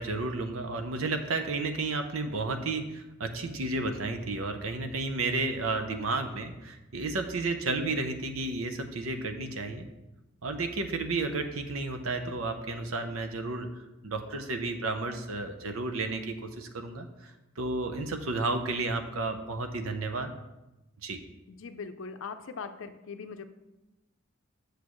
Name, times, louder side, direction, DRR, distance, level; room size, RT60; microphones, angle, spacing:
voice 1, 0.0-9.9 10.4-20.3 21.0-21.2, right 3 dB, 75° right, 7 dB, 0.8 m, -32 dB
voice 2, 21.5-23.4, left 5 dB, 65° left, 9 dB, 0.5 m, -40 dB
8.4 x 6.5 x 3.1 m, 1.0 s
head